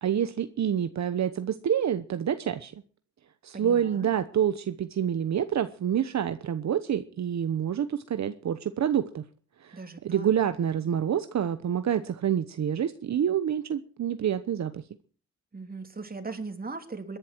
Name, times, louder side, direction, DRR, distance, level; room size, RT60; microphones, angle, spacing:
voice 1, 0.0-2.7 3.4-9.2 9.6-9.8 10.0-14.8, right 9 dB, 65° right, 10 dB, 1.1 m, -27 dB
voice 2, 3.5-4.1 9.7-10.3 15.5-17.2, right 3 dB, 30° right, 6 dB, 3.3 m, -39 dB
22.0 x 11.0 x 4.6 m, 0.41 s
cardioid pair, 80°, 29 cm